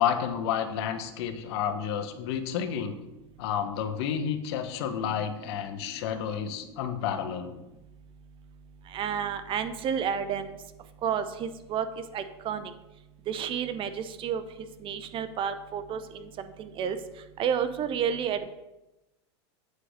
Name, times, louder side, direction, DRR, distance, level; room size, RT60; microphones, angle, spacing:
voice 1, 0.0-3.0 3.4-7.6, left 8 dB, 65° left, 8 dB, 1.1 m, -30 dB
voice 2, 8.9-10.6 11.0-11.9 12.1-12.7 13.3-14.4 14.8-17.0 17.4-18.5, right 8 dB, 35° right, 11 dB, 0.8 m, -30 dB
8.4 x 4.8 x 6.6 m, 0.97 s
hypercardioid pair, 110°, 15 cm